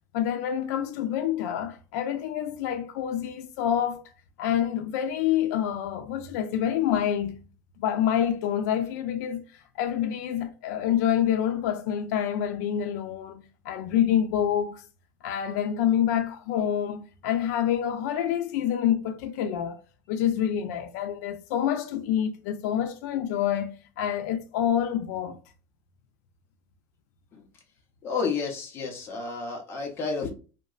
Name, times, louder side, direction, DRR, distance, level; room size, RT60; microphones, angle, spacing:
voice 1, 0.1-4.1 4.4-7.4 7.8-14.8 15.2-19.8 20.1-25.4, left 10 dB, 90° left, 0.4 m, -27 dB
voice 2, 28.0-30.3, left 5 dB, 25° left, 0.7 m, -31 dB
2.8 x 2.2 x 2.3 m
cardioid pair, 155°, 9 cm